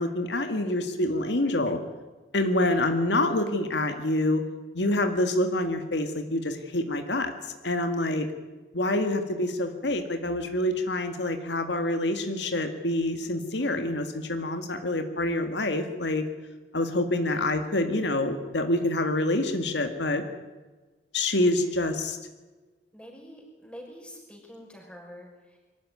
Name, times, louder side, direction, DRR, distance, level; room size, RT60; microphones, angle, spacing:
voice 1, 0.0-1.8 2.3-4.4 4.7-7.3 7.6-8.3 8.7-16.2 16.7-20.2 21.1-22.2, left 1 dB, 85° left, 6 dB, 1.9 m, -26 dB
voice 2, 2.6-2.9 13.6-14.0 17.2-17.5 22.9-25.6, equal, 5° left, -1 dB, 5.8 m, -47 dB
23.5 x 13.5 x 9.6 m, 1.3 s
head